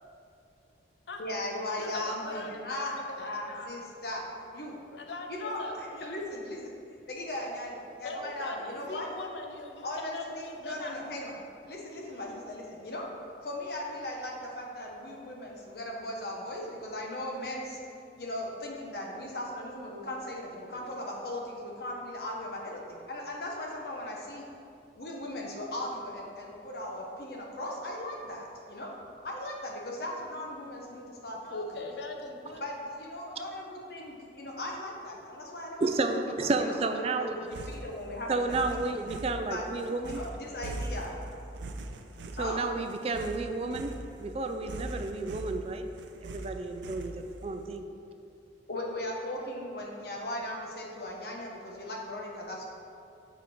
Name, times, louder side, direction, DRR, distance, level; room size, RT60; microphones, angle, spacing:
voice 1, 1.2-4.2 4.5-4.7 5.3-5.6 6.0-6.7 7.1-9.1 9.8-11.3 11.6-13.0 13.4-17.8 18.2-24.5 24.9-28.9 29.2-31.7 32.6-36.2 36.6-38.9 39.5-41.2 42.4-42.6 48.7-52.6, left 1 dB, 60° left, -1 dB, 1.1 m, -38 dB
voice 2, 1.8-3.7 4.1-4.2 4.9-6.2 8.0-11.0 12.1-12.4 20.6-21.1 31.4-32.6, left 2 dB, 75° left, 3 dB, 0.7 m, -42 dB
voice 3, 35.8-37.4 38.3-40.2 42.4-43.9 44.2-45.9 46.2-47.8, right 3 dB, 35° right, 7 dB, 0.3 m, -31 dB
sound 1, 37.5-47.5, right 2 dB, 90° right, 0.5 m, -41 dB
7.2 x 4.4 x 5.0 m, 2.6 s
head